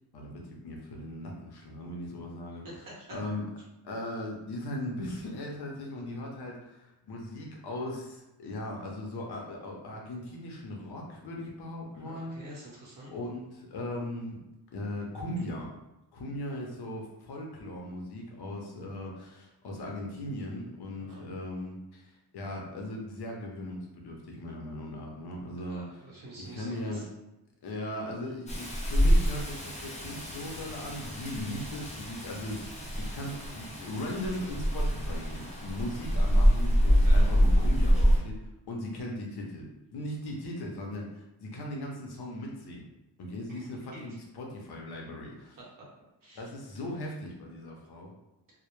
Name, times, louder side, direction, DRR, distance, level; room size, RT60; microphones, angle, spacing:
voice 1, 0.1-2.7 3.1-3.5 3.8-12.4 13.1-14.4 14.7-15.7 16.1-26.0 26.4-27.0 27.6-42.9 43.2-45.6 46.3-48.2, left 1 dB, 65° left, -1 dB, 0.6 m, -38 dB
voice 2, 2.6-3.1 11.9-13.1 21.0-21.2 25.7-27.0 28.2-28.3 37.0-37.3 43.5-43.6 43.9-44.0 46.2-46.5, right 1 dB, 50° right, -5 dB, 0.9 m, -47 dB
Rain, 28.5-38.2, equal, 15° left, 0.4 m, -26 dB
2.1 x 2.0 x 2.9 m, 0.94 s
wide cardioid pair, 160°, 42 cm